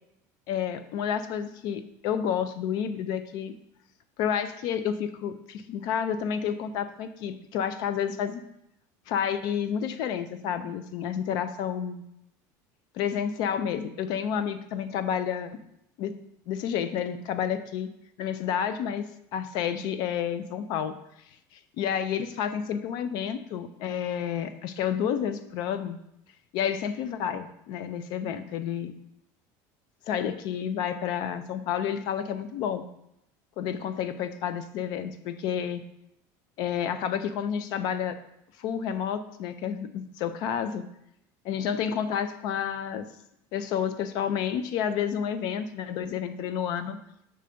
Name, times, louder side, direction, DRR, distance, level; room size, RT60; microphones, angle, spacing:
voice 1, 0.5-3.6 4.2-8.4 9.1-12.0 12.9-15.5 16.0-16.2 16.5-17.9 18.2-19.0 19.3-20.9 21.5-26.0 26.5-28.9 30.1-32.8 33.6-35.8 36.6-38.2 38.6-40.8 41.4-43.1 43.5-47.0, left 8 dB, 50° left, 11 dB, 0.5 m, -30 dB
6.4 x 3.4 x 5.0 m, 0.79 s
cardioid pair, 165°, 9 cm